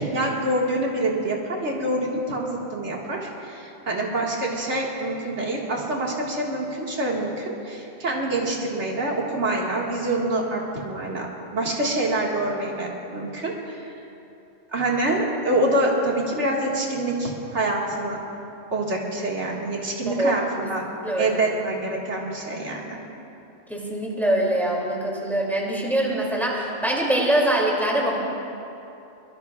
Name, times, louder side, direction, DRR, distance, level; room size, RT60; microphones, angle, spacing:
voice 1, 0.0-13.9 14.7-18.2 18.7-20.8 21.2-23.0, right 1 dB, 70° right, -3 dB, 2.2 m, -26 dB
voice 2, 21.0-21.4 23.7-28.2, right 1 dB, ahead, -4 dB, 2.7 m, -23 dB
22.5 x 22.5 x 2.4 m, 2.8 s
omnidirectional pair, 1.2 m